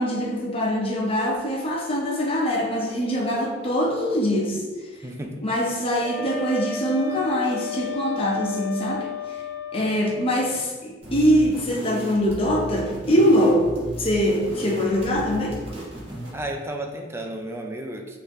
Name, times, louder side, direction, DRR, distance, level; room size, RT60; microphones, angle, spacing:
voice 1, 0.0-4.6 5.4-9.4 9.7-13.7 14.0-15.6, equal, 30° left, -2 dB, 0.7 m, -23 dB
voice 2, 5.0-5.4 16.3-18.2, right 1 dB, 15° right, 3 dB, 0.4 m, -33 dB
Wind instrument woodwind instrument, 6.0-10.3, left 6 dB, 85° left, 0.6 m, -33 dB
sound 1, 11.0-16.5, right 1 dB, 30° right, 1.2 m, -36 dB
6.2 x 2.6 x 3.0 m, 1.4 s
head